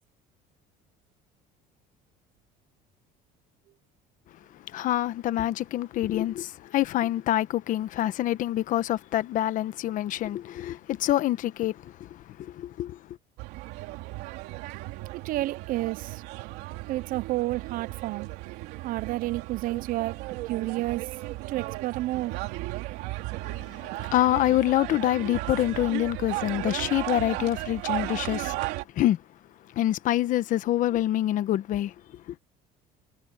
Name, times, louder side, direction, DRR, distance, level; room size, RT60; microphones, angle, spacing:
voice 1, 4.5-13.2 23.4-28.6 28.9-29.2 29.7-32.3, left 13 dB, 55° left, 1.2 m, -26 dB
sound 1, 13.4-28.8, right 19 dB, 85° right, 3.1 m, -35 dB
voice 2, 15.1-16.2 16.9-18.3 18.8-21.2 21.5-22.4, right 17 dB, 60° right, 0.6 m, -30 dB
cardioid pair, 140°, 16 cm